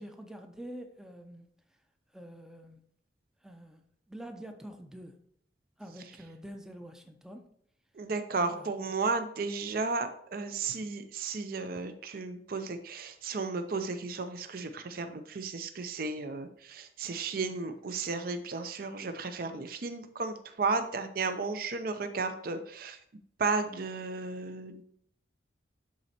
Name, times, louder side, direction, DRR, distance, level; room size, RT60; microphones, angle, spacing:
voice 1, 0.0-1.5 2.1-2.8 3.4-3.8 4.1-5.2 5.8-7.5 8.4-8.7 17.4-17.6, right 1 dB, 5° right, 0.5 m, -46 dB
voice 2, 7.9-23.0 23.4-24.9, right 4 dB, 50° right, 0.5 m, -34 dB
12.0 x 4.2 x 2.8 m
head